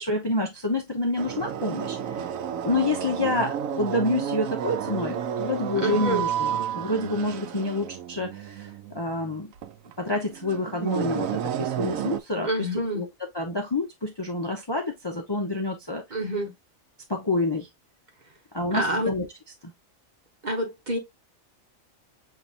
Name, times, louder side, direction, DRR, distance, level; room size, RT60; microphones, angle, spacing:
voice 1, 0.0-2.4 2.6-9.5 10.0-12.5 12.9-13.1 13.3-16.0 17.1-17.7 18.5-19.3 19.6-19.7, left 2 dB, 25° left, 0.7 m, -28 dB
sound 1, 1.2-12.2, right 9 dB, 85° right, 1.0 m, -31 dB
voice 2, 5.7-6.3 12.4-13.1 16.1-16.5 18.7-19.1 20.4-21.0, right 1 dB, 35° right, 1.2 m, -27 dB
6.9 x 2.8 x 2.5 m
omnidirectional pair, 1.4 m